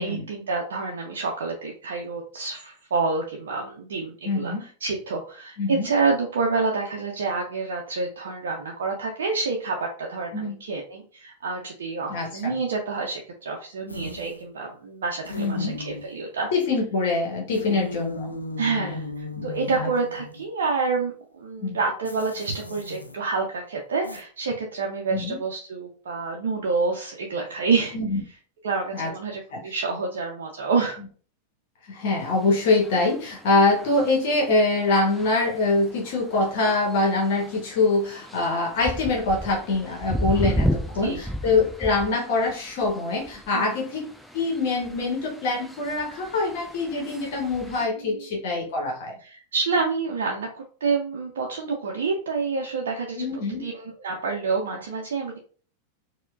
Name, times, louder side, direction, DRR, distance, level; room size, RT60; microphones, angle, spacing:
voice 1, 0.0-16.5 17.7-17.8 18.6-28.0 28.6-31.0 41.0-41.2 43.5-43.7 48.1-48.2 49.2-53.3 53.6-55.4, right 4 dB, 60° right, 0 dB, 0.5 m, -28 dB
voice 2, 4.2-4.6 5.6-5.9 10.3-10.6 12.1-12.6 15.4-15.7 16.5-18.3 18.9-19.0 19.4-19.5 19.8-19.9 21.6-21.8 25.1-25.4 27.9-28.2 28.9-29.1 29.5-29.6 31.9-44.0 44.3-49.1 53.2-53.7, left 3 dB, 50° left, 0 dB, 0.9 m, -24 dB
sound 1, 13.9-14.5 15.2-16.2 17.5-20.5 22.0-23.1 24.0-24.2, left 1 dB, 85° left, 0.4 m, -36 dB
sound 2, 32.2-47.9, equal, ahead, 0.4 m, -34 dB
4.3 x 2.2 x 2.3 m, 0.42 s
figure-of-eight pair, 90°, 0 cm